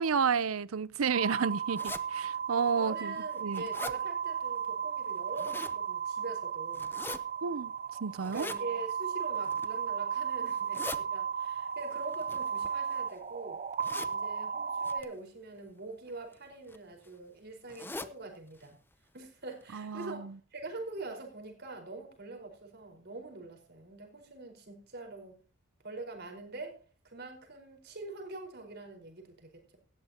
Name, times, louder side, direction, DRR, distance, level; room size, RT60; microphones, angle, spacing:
voice 1, 0.0-3.1 3.4-3.6 7.4-7.7 8.0-8.5 19.7-20.3, right 6 dB, 80° right, 0.6 m, -31 dB
sound 1, 1.1-15.0, right 7 dB, 35° right, 0.6 m, -35 dB
sound 2, 1.7-2.0 2.7-2.8 3.2-4.0 5.1-5.8 6.7-7.2 8.2-8.6 9.4-9.8 10.5-11.0 12.1-13.1 13.8-14.1 14.8-15.1 16.1-16.3 16.7-16.8 17.0-17.1 17.7-18.1 18.5-18.7 18.9-19.0 19.6-19.7 20.0-20.1, left 2 dB, 10° left, 0.7 m, -42 dB
voice 2, 2.7-6.9 8.3-13.6 14.1-18.8 19.1-20.3 20.5-25.3 25.8-29.8, right 3 dB, 50° right, 4.8 m, -44 dB
17.5 x 14.0 x 2.9 m
head